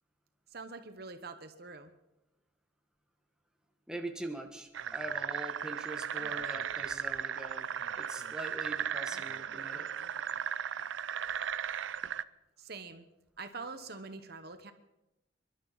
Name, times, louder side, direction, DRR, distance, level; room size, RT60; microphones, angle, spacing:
voice 1, 0.5-1.9 12.6-13.1 13.4-14.7, right 4 dB, 55° right, 8 dB, 1.1 m, -44 dB
voice 2, 3.9-7.7 8.0-9.9, right 1 dB, 5° right, 2 dB, 1.4 m, -43 dB
sound 1, 4.7-12.2, right 8 dB, 75° right, 0.5 m, -36 dB
27.5 x 12.0 x 4.1 m, 0.91 s
head